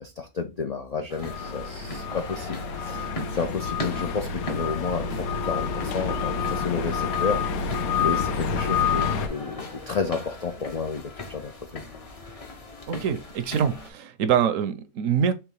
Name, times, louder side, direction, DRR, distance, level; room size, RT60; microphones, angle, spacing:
voice 1, 0.0-11.8, left 5 dB, 70° left, 0.3 m, -31 dB
sound 1, 1.1-13.9, left 2 dB, 30° left, 0.8 m, -39 dB
sound 2, 1.2-9.3, left 6 dB, 90° left, 1.1 m, -28 dB
voice 2, 12.9-15.3, right 8 dB, 70° right, 1.0 m, -24 dB
3.5 x 3.0 x 4.6 m
omnidirectional pair, 1.5 m